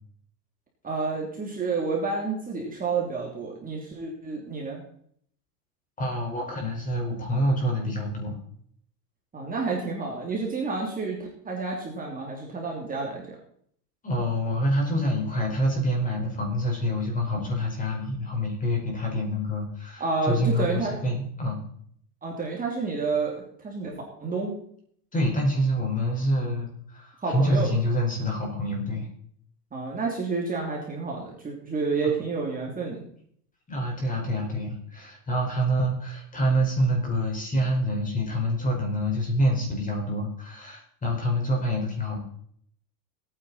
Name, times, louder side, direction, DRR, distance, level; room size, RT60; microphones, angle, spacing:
voice 1, 0.8-4.8 9.3-13.4 20.0-21.0 22.2-24.6 27.2-27.8 29.7-33.0, right 4 dB, 15° right, -1 dB, 3.2 m, -30 dB
voice 2, 6.0-8.4 14.0-21.6 25.1-29.1 33.7-42.2, equal, 15° left, 1 dB, 5.1 m, -26 dB
19.5 x 9.4 x 4.3 m, 0.64 s
supercardioid pair, 130°, 48 cm